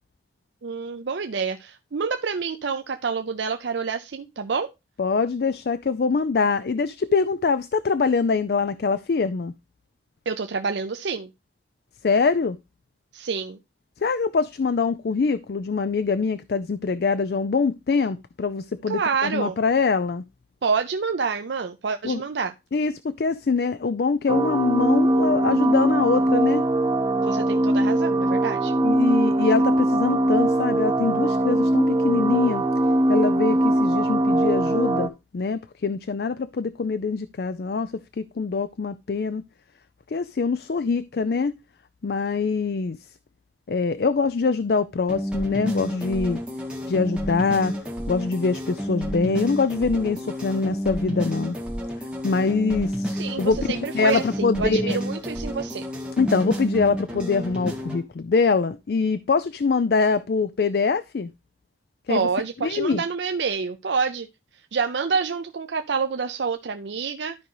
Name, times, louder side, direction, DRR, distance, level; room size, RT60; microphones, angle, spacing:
voice 1, 0.6-4.7 10.3-11.3 13.1-13.6 18.9-19.5 20.6-22.5 27.2-28.7 53.1-55.8 62.1-64.3 64.7-67.4, right 5 dB, 85° right, 0.6 m, -27 dB
voice 2, 5.0-9.5 12.0-12.6 14.0-20.2 22.0-22.2 22.7-26.7 28.8-32.6 33.1-39.4 40.1-41.6 42.0-43.0 43.7-46.4 46.9-47.7 48.1-51.6 52.2-55.0 56.2-61.3 62.1-62.3 62.6-63.0, left 4 dB, 60° left, 0.4 m, -24 dB
sound 1, 24.3-35.1, right 1 dB, 25° right, 0.7 m, -21 dB
sound 2, 45.1-58.0, equal, 5° right, 1.8 m, -30 dB
12.5 x 5.2 x 3.0 m
head